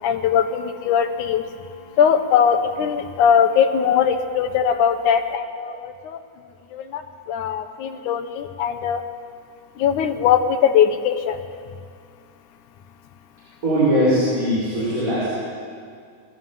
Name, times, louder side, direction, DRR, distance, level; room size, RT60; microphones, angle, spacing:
voice 1, 0.0-1.4 2.0-6.2 6.7-7.0 7.3-9.0 9.8-11.4, left 8 dB, 80° left, 7 dB, 2.6 m, -20 dB
voice 2, 13.6-15.3, equal, 25° right, -8 dB, 6.5 m, -20 dB
22.5 x 14.0 x 9.3 m, 2.2 s
omnidirectional pair, 3.5 m